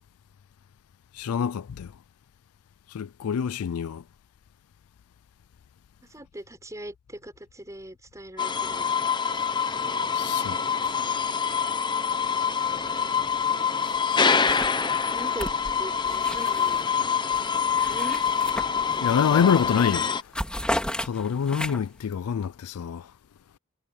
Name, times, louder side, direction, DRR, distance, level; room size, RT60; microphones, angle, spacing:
voice 1, 1.1-1.9 2.9-4.0 10.1-11.0 19.0-20.1 21.0-23.1, left 7 dB, 85° left, 0.4 m, -26 dB
voice 2, 6.1-9.0 15.1-15.5 15.7-16.9 17.9-18.2, right 1 dB, 15° right, 6.7 m, -40 dB
sound 1, 8.4-20.2, left 6 dB, 20° left, 0.7 m, -25 dB
sound 2, 13.8-14.2 14.5-16.9 17.3-19.2 19.6-19.8 20.1-22.0, left 1 dB, 5° left, 3.5 m, -34 dB
head